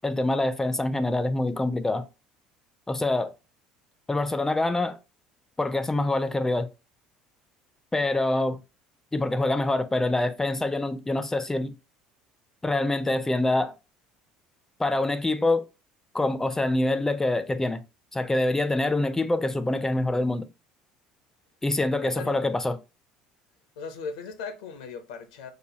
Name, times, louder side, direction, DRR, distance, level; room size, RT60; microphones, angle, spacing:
voice 1, 0.0-2.1 2.9-3.3 4.1-5.0 5.6-6.7 7.9-8.6 9.1-11.7 12.6-13.7 14.8-15.7 16.1-17.8 18.1-20.5 21.6-22.8, left 2 dB, 15° left, 0.4 m, -25 dB
voice 2, 22.0-22.5 23.8-25.5, left 5 dB, 80° left, 0.7 m, -38 dB
4.8 x 2.2 x 2.8 m
hypercardioid pair, 65°, 3 cm